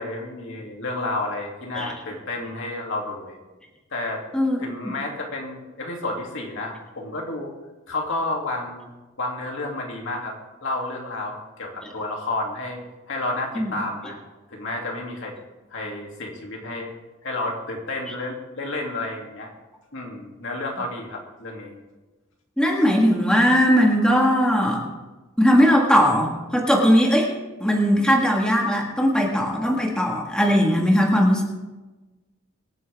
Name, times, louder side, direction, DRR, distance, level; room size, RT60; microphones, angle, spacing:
voice 1, 0.0-3.4 3.9-4.2 4.6-7.5 7.9-8.9 9.2-10.4 10.6-14.2 14.5-15.3 15.7-16.9 17.2-19.5 19.9-21.8, left 2 dB, 60° left, 0 dB, 2.6 m, -31 dB
voice 2, 22.6-24.9 25.4-27.3 27.6-31.4, equal, 5° left, -1 dB, 1.7 m, -19 dB
24.5 x 9.3 x 3.5 m, 1.2 s
head